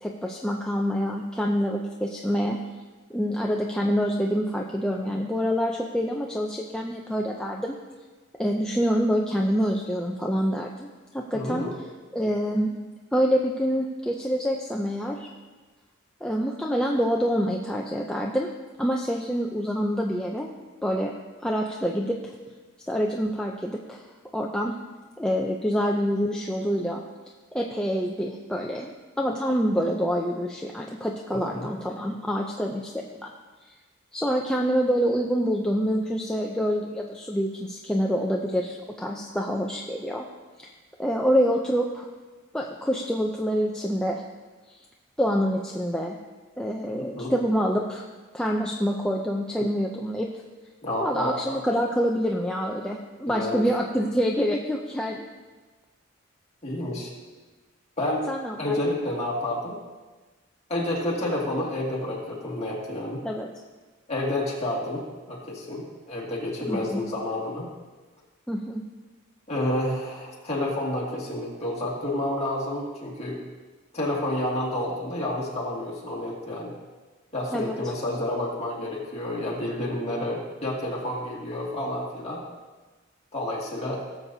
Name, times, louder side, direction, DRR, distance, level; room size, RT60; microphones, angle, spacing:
voice 1, 0.0-2.6 3.1-7.8 8.4-10.9 11.1-11.7 12.1-12.8 13.1-15.3 16.2-18.5 18.8-20.5 20.8-21.1 21.4-22.2 22.9-24.0 24.3-24.8 25.2-27.0 27.5-28.9 29.2-33.3 34.1-40.2 40.6-40.7 41.0-42.1 42.5-44.2 45.2-46.2 46.6-48.1 48.3-50.3 51.0-55.2 58.3-58.9 63.2-63.5 66.7-67.0 68.5-68.8 77.5-77.8, equal, 5° left, -1 dB, 0.4 m, -26 dB
voice 2, 11.3-11.8 31.3-31.7 47.2-47.3 50.8-51.6 53.3-53.7 56.6-57.1 58.0-58.3 58.6-59.8 60.7-63.2 64.1-67.7 69.5-73.4 73.9-76.7 77.3-82.4 83.3-84.0, left 1 dB, 30° left, -4 dB, 2.2 m, -29 dB
17.5 x 7.3 x 2.7 m, 1.3 s
head